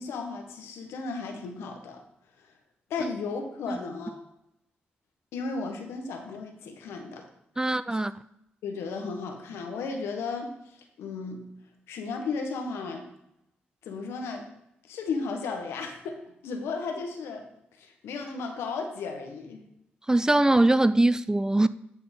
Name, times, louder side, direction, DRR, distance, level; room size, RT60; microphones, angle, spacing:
voice 1, 0.0-2.0 2.4-2.5 2.9-4.2 5.3-7.2 7.6-7.7 8.6-11.4 11.9-13.0 13.8-14.5 14.9-17.4 17.8-19.6, left 4 dB, 80° left, 1.4 m, -34 dB
voice 2, 7.6-8.1 20.1-21.7, right 2 dB, 15° right, 0.4 m, -22 dB
11.0 x 4.3 x 5.3 m
supercardioid pair, 50°, 4 cm